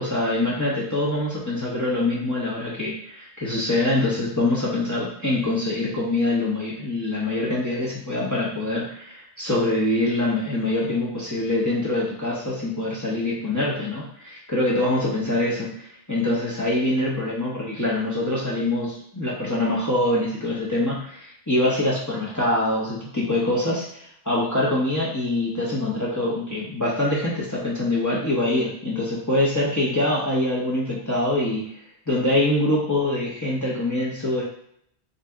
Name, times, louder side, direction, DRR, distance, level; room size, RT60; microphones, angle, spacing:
voice 1, 0.0-31.7 32.1-34.4, left 1 dB, 20° left, -6 dB, 0.7 m, -24 dB
3.2 x 2.7 x 3.5 m, 0.69 s
omnidirectional pair, 1.1 m